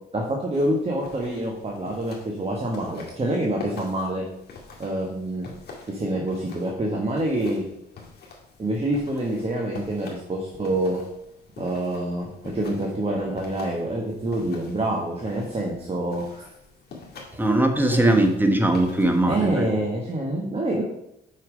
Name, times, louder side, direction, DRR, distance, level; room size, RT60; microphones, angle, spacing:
voice 1, 0.1-4.2 4.8-5.5 5.9-7.6 8.6-11.0 11.6-16.5 17.9-18.1 19.3-20.8, right 1 dB, 30° right, -1 dB, 1.3 m, -26 dB
sound 1, 0.5-19.7, left 4 dB, 55° left, 2.1 m, -45 dB
voice 2, 17.3-19.7, right 1 dB, 10° right, 5 dB, 1.2 m, -20 dB
6.3 x 5.8 x 5.1 m, 0.82 s
cardioid pair, 90°, 20 cm